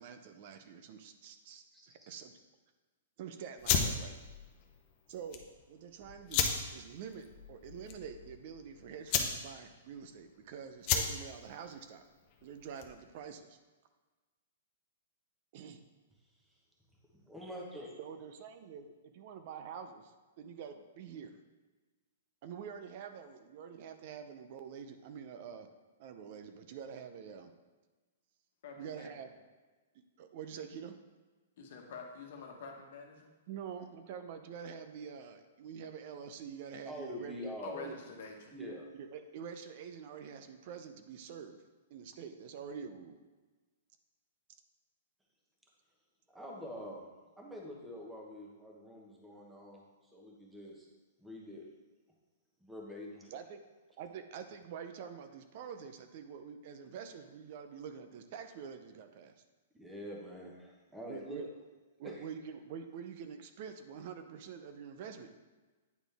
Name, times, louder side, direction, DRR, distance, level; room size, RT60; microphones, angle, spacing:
voice 1, 0.0-2.3 3.2-4.1 5.1-12.0 12.4-13.6 15.5-15.8 18.0-21.4 22.4-25.7 26.0-27.5 28.8-29.3 30.2-31.0 33.5-37.5 37.8-37.9 39.0-41.6 41.9-43.2 53.3-53.6 54.0-59.3 61.1-61.5 62.0-65.3, right 7 dB, 50° right, 8 dB, 0.5 m, -46 dB
voice 2, 1.7-2.1 17.1-17.9 36.8-37.9 38.5-38.9 46.3-47.0 47.4-50.9 51.2-51.7 52.6-53.3 59.7-61.5 62.0-62.1, equal, 5° right, -2 dB, 1.2 m, -45 dB
sound 1, 3.6-13.1, left 7 dB, 40° left, 0.7 m, -35 dB
voice 3, 28.6-29.1 31.6-33.3 37.6-38.5, left 4 dB, 65° left, 2 dB, 1.2 m, -47 dB
9.0 x 4.0 x 3.4 m, 1.3 s
hypercardioid pair, 135°, 0 cm